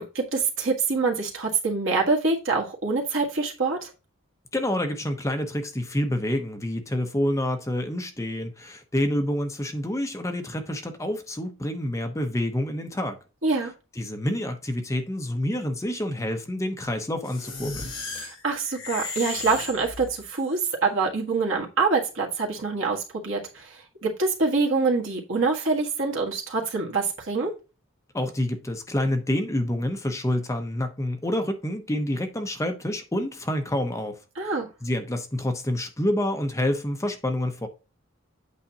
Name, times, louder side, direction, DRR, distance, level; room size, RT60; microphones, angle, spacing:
voice 1, 0.0-3.9 13.4-13.7 18.2-27.5 34.3-34.7, right 4 dB, 70° right, 1.7 m, -25 dB
voice 2, 4.5-13.2 14.0-17.9 28.1-34.2 34.8-37.7, left 1 dB, 15° left, 0.8 m, -28 dB
sound 1, 17.2-20.5, left 3 dB, 75° left, 4.4 m, -35 dB
8.4 x 4.9 x 2.8 m
head